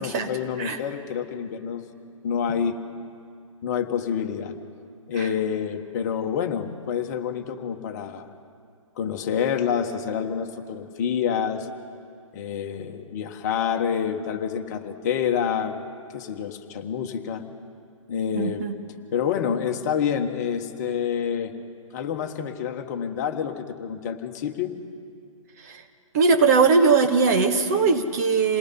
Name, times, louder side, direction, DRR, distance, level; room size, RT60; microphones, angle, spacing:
voice 1, 0.0-1.8 2.2-2.8 3.6-4.6 5.1-8.3 9.0-11.7 12.3-15.8 16.1-17.4 18.1-18.7 19.1-21.5 21.9-24.7, left 8 dB, 30° left, 5 dB, 1.5 m, -27 dB
voice 2, 18.3-18.7 25.6-25.8 26.1-28.6, right 4 dB, 30° right, 4 dB, 1.4 m, -20 dB
28.0 x 19.5 x 5.6 m, 2.3 s
figure-of-eight pair, 130°, 17 cm